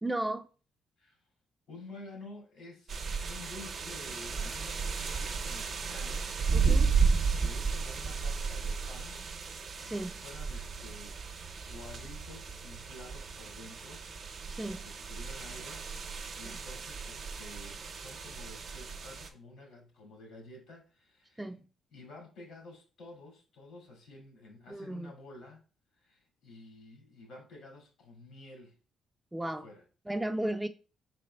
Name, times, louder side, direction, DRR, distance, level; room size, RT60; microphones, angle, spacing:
voice 1, 0.0-0.5 6.5-6.9 9.8-10.2 14.5-14.9 16.5-16.6 21.4-21.7 24.7-25.1 29.3-29.6 30.1-30.7, right 1 dB, 10° right, 0.4 m, -35 dB
voice 2, 1.7-3.0 3.2-6.3 7.4-9.3 9.8-14.1 14.5-21.5 21.9-25.6 25.9-28.8 29.4-29.8, left 2 dB, 80° left, 2.0 m, -51 dB
sound 1, 2.9-19.3, right 5 dB, 55° right, 0.7 m, -33 dB
5.0 x 4.2 x 2.2 m
cardioid pair, 90°, 0 cm